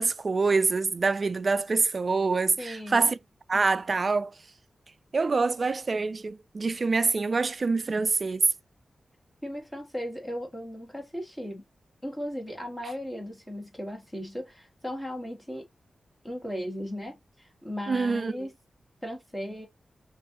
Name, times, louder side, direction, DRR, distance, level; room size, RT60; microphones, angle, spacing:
voice 1, 0.0-3.2 3.5-4.3 5.1-8.5 17.9-18.5, right 4 dB, 40° right, 0.3 m, -25 dB
voice 2, 2.6-3.1 9.4-11.6 12.0-15.6 16.2-18.5 19.0-19.7, equal, 10° left, 1.9 m, -36 dB
6.6 x 2.6 x 2.9 m
wide cardioid pair, 160°, 0 cm